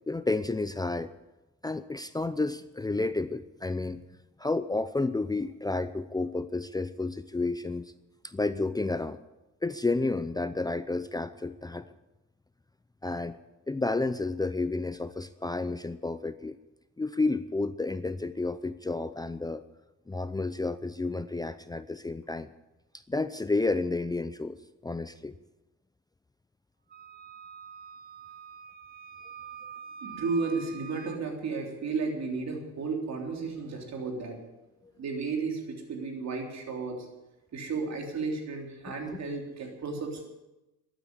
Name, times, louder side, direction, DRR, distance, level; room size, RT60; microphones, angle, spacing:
voice 1, 0.1-1.1 1.6-4.0 4.4-7.9 8.2-9.2 9.6-11.8 13.0-13.4 13.7-16.6 17.0-19.6 20.1-22.5 23.1-24.6 24.8-25.4 39.1-39.2, left 3 dB, 15° left, 12 dB, 0.6 m, -31 dB
Wind instrument woodwind instrument, 26.9-31.2, right 7 dB, 30° right, 0.8 m, -45 dB
voice 2, 30.0-34.4 35.0-37.1 37.5-40.3, right 4 dB, 60° right, 2 dB, 3.5 m, -33 dB
13.0 x 9.1 x 9.8 m, 1.0 s
cardioid pair, 90°, 30 cm